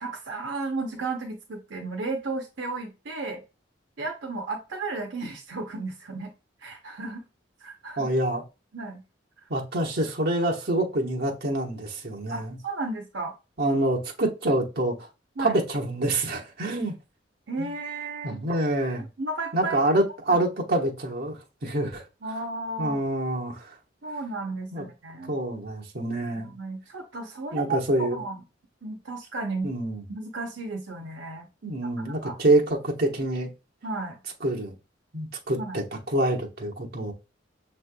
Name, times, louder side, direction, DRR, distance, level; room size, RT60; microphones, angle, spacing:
voice 1, 0.0-3.4 4.0-6.3 6.6-7.2 7.6-8.1 8.7-9.0 12.3-13.3 15.4-15.5 17.5-18.4 19.2-19.9 20.3-20.5 22.2-23.0 24.0-25.3 26.4-27.8 28.1-28.4 28.8-29.7 30.1-31.5 32.0-32.4 33.8-34.2 35.6-35.8, right 3 dB, 80° right, 0.8 m, -33 dB
voice 2, 8.0-8.4 9.5-12.6 13.6-15.1 15.4-16.9 17.6-17.7 18.2-19.1 19.5-22.0 22.8-23.7 24.7-24.9 25.3-26.5 27.5-28.2 29.6-30.0 31.6-33.5 34.4-34.7 35.1-35.8 36.1-37.1, right 1 dB, 55° right, 1.1 m, -26 dB
6.4 x 3.3 x 2.2 m
head